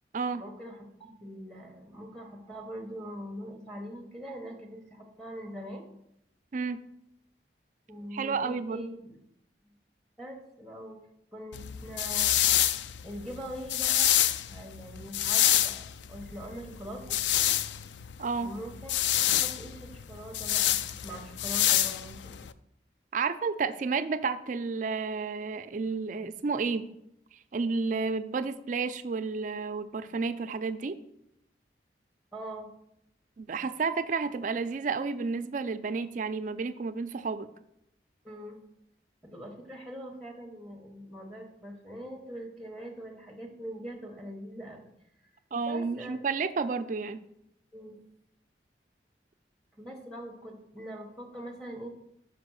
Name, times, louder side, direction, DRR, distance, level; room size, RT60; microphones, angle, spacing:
voice 1, 0.4-5.8 7.9-9.2 9.6-9.7 10.2-11.0 11.3-12.4 13.0-17.2 18.4-18.9 19.3-22.4 32.3-32.7 38.2-38.6 39.2-44.9 45.2-45.3 45.6-46.2 47.7-48.0 49.8-51.9, equal, 5° left, 0 dB, 1.0 m, -43 dB
voice 2, 8.1-8.9 18.2-18.5 23.1-26.9 27.5-31.0 33.4-37.5 45.5-47.2, right 4 dB, 45° right, 11 dB, 0.4 m, -31 dB
sound 1, 11.5-22.5, left 12 dB, 80° left, 0.3 m, -27 dB
5.6 x 5.1 x 6.2 m, 0.78 s
head